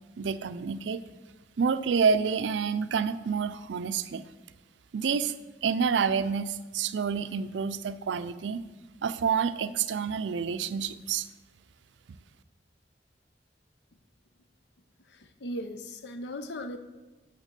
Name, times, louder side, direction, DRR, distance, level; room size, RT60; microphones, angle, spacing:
voice 1, 0.2-1.0 1.6-4.3 4.9-5.3 5.6-8.7 9.0-11.3, right 6 dB, 85° right, 13 dB, 0.4 m, -28 dB
voice 2, 15.1-16.8, equal, 70° left, 9 dB, 0.7 m, -38 dB
6.3 x 5.8 x 6.7 m, 1.2 s
head